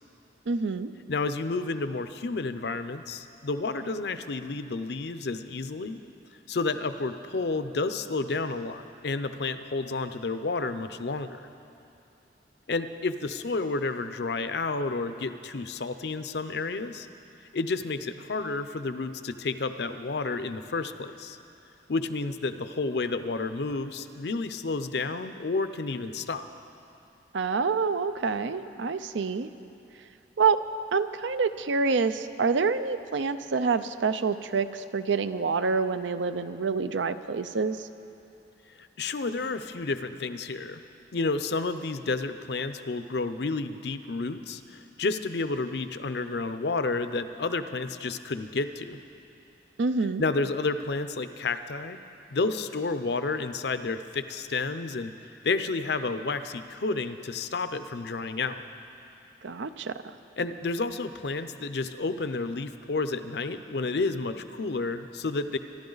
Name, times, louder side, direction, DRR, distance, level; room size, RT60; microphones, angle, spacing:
voice 1, 0.5-0.9 27.3-29.5 30.4-30.6 30.9-37.9 49.8-50.2 59.4-60.1, right 4 dB, 85° right, 11 dB, 0.5 m, -27 dB
voice 2, 1.1-6.0 6.5-11.4 12.7-17.1 17.5-21.4 21.9-26.4 38.7-40.8 41.1-49.0 50.2-52.0 52.3-58.6 60.4-65.6, left 3 dB, 65° left, 10 dB, 0.6 m, -31 dB
25.5 x 11.5 x 4.0 m, 2.7 s
head